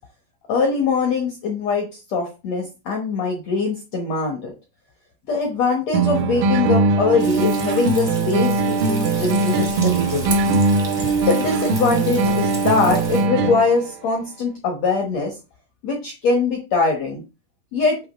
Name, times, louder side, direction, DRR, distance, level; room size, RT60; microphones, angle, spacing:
voice 1, 0.5-4.5 5.3-10.6 11.3-15.4 15.8-17.2 17.7-18.0, left 4 dB, 75° left, 2 dB, 1.5 m, -22 dB
sound 1, 5.9-13.9, right 3 dB, 85° right, 2.0 m, -20 dB
Frying (food), 7.2-13.2, right 1 dB, 35° right, 0.4 m, -34 dB
8.5 x 3.0 x 5.2 m, 0.29 s
omnidirectional pair, 4.7 m